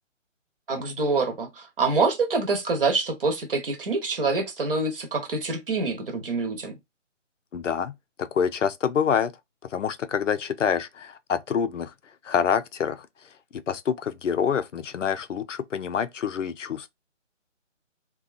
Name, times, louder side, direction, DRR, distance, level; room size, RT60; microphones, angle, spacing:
voice 1, 0.7-6.8, right 3 dB, 45° right, 1.0 m, -26 dB
voice 2, 7.5-9.3 9.7-11.9 12.2-13.1 13.7-16.9, left 7 dB, 75° left, 0.5 m, -26 dB
2.7 x 2.3 x 2.4 m
figure-of-eight pair, 160°, 38 cm